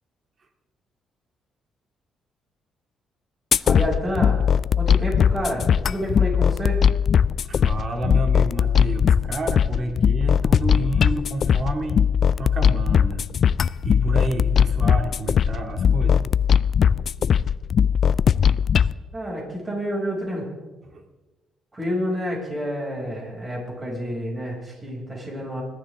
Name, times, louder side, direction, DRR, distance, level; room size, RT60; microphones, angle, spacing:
sound 1, 3.5-18.9, left 7 dB, 55° left, 0.3 m, -19 dB
voice 1, 3.6-4.4 4.8-6.8 19.1-20.5 21.7-25.6, equal, 25° right, -2 dB, 6.4 m, -29 dB
voice 2, 7.4-12.0 12.4-13.2 13.8-16.2 20.8-21.0, right 2 dB, 45° right, 4 dB, 2.3 m, -29 dB
21.0 x 12.5 x 3.6 m, 1.2 s
cardioid pair, 90°, 0 cm